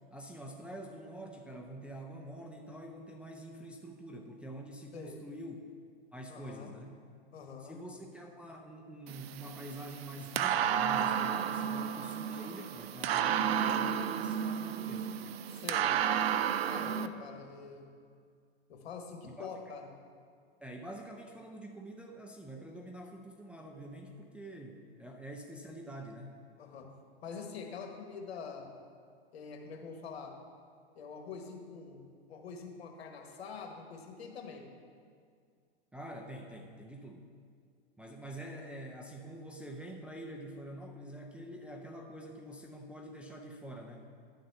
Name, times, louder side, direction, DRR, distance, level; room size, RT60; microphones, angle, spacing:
voice 1, 0.0-5.6 6.1-6.9 7.6-15.1 16.7-17.0 19.4-19.5 20.6-26.4 35.9-37.3 38.0-44.1, right 1 dB, 5° right, 0 dB, 0.3 m, -46 dB
voice 2, 6.3-6.7 7.3-7.8 15.5-16.0 16.7-17.9 18.7-19.9 26.6-26.9 27.2-28.7 29.3-30.4 31.0-34.7, left 5 dB, 80° left, 3 dB, 1.3 m, -45 dB
sound 1, 9.1-17.1, right 9 dB, 75° right, 0.5 m, -32 dB
10.5 x 4.0 x 6.6 m, 2.2 s
hypercardioid pair, 125°, 31 cm